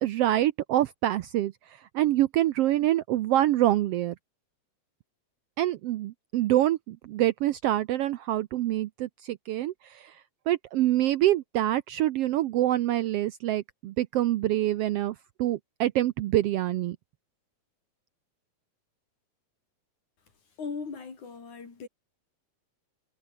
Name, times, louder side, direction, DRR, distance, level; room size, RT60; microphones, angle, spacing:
voice 1, 0.0-1.5 1.9-4.1 5.6-10.1 10.5-17.0, right 14 dB, 75° right, 1.4 m, -26 dB
voice 2, 20.6-21.9, left 5 dB, 80° left, 6.1 m, -38 dB
omnidirectional pair, 3.4 m